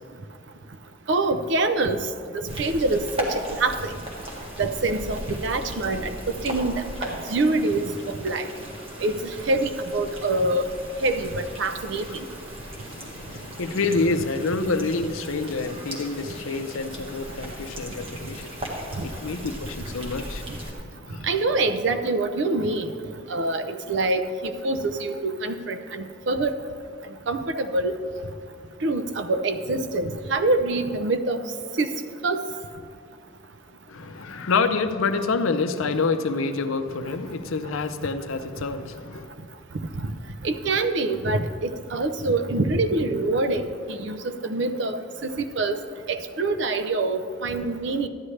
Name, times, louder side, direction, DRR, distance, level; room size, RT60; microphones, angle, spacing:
voice 1, 1.1-2.1 2.3-3.9 4.6-8.5 9.0-10.6 11.0-12.1 18.9-19.0 20.5-20.6 21.2-22.9 23.3-26.5 27.3-28.0 28.8-31.4 31.8-31.9 32.2-32.4 40.0-40.1 40.4-45.8 46.1-48.1, right 2 dB, 60° right, 10 dB, 0.5 m, -25 dB
sound 1, 2.5-20.7, equal, 30° right, 1.4 m, -37 dB
voice 2, 12.8-21.3 21.6-21.7 33.9-39.3, left 4 dB, 85° left, 9 dB, 0.6 m, -28 dB
13.0 x 9.8 x 3.2 m, 2.3 s
head